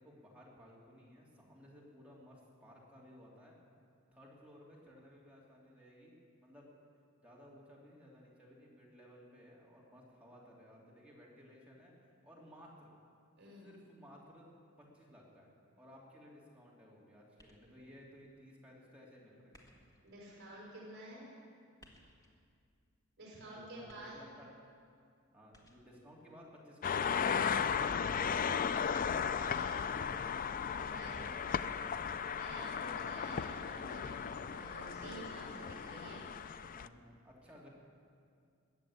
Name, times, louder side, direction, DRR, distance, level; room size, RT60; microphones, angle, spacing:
voice 1, 0.0-3.6 4.1-6.7 7.2-11.9 12.2-12.9 13.6-14.5 14.8-19.8 23.4-24.5 25.3-28.6 30.7-32.0 36.6-37.7, equal, 5° right, -5 dB, 3.1 m, -58 dB
voice 2, 13.4-13.7 20.0-21.3 23.2-24.2 29.3-29.8 30.8-31.2 32.4-36.2, right 1 dB, 50° right, -4 dB, 5.5 m, -50 dB
sound 1, 17.4-17.9 19.5-20.1 21.8-22.4 23.9-24.5 25.5-26.1 28.9-29.5, left 1 dB, 15° left, 1.7 m, -62 dB
sound 2, 26.8-36.9, left 7 dB, 40° left, 0.4 m, -36 dB
21.0 x 7.6 x 8.7 m, 2.3 s
head